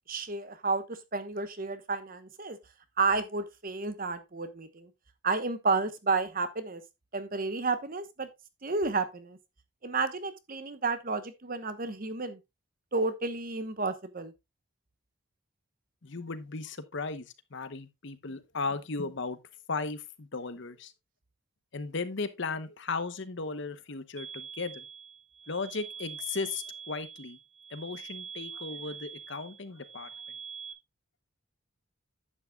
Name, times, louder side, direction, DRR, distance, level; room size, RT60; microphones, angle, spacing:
voice 1, 0.1-2.6 3.0-4.9 5.2-6.8 7.1-8.3 8.6-9.4 9.8-12.4 12.9-14.3, right 4 dB, 40° right, 1.0 m, -31 dB
voice 2, 16.0-19.4 19.7-20.9 21.7-24.8 25.5-27.4 27.7-30.1, left 4 dB, 55° left, 0.9 m, -36 dB
sound 1, 24.2-30.7, right 6 dB, 25° right, 1.5 m, -44 dB
11.0 x 8.6 x 2.3 m
head